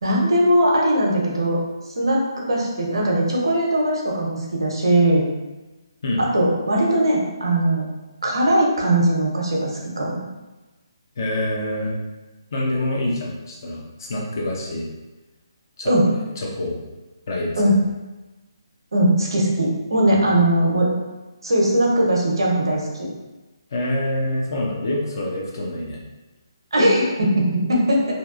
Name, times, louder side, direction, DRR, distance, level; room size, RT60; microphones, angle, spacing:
voice 1, 0.0-1.6 2.0-5.3 6.2-7.9 8.2-9.7 10.0-10.2 15.8-16.1 17.5-17.8 18.9-20.9 21.4-23.1 26.7-28.1, right 1 dB, 70° right, -2 dB, 0.8 m, -19 dB
voice 2, 11.2-12.0 12.5-14.9 15.8-15.9 16.4-16.8 17.3-17.7 20.1-20.3 23.7-26.0, left 1 dB, 50° left, -2 dB, 0.6 m, -26 dB
2.8 x 2.3 x 2.4 m, 1.1 s
figure-of-eight pair, 140°, 2 cm